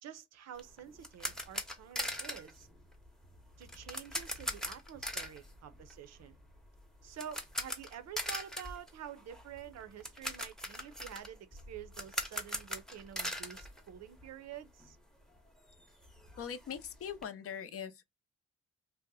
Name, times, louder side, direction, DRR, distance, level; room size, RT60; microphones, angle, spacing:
voice 1, 0.0-2.7 3.6-6.4 7.0-15.0, right 9 dB, 60° right, 0.5 m, -48 dB
sound 1, 0.6-14.5 14.8-14.9 15.4-15.5 15.7-17.2, left 1 dB, ahead, 0.7 m, -41 dB
voice 2, 16.4-18.0, left 8 dB, 50° left, 0.5 m, -41 dB
2.6 x 2.1 x 3.8 m
cardioid pair, 90°, 30 cm